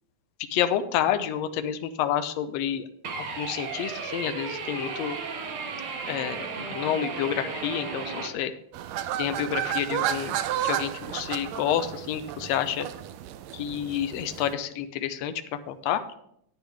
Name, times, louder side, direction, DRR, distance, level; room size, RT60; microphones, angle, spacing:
voice 1, 0.5-2.9 3.2-5.2 6.1-6.5 6.7-8.5 9.2-12.9 13.5-15.3 15.7-16.2, left 10 dB, 75° left, 9 dB, 1.7 m, -29 dB
sound 1, 3.0-8.3, right 5 dB, 60° right, 1.6 m, -34 dB
sound 2, 8.7-14.5, right 11 dB, 80° right, 1.6 m, -32 dB
10.0 x 9.6 x 3.5 m, 0.71 s
omnidirectional pair, 3.5 m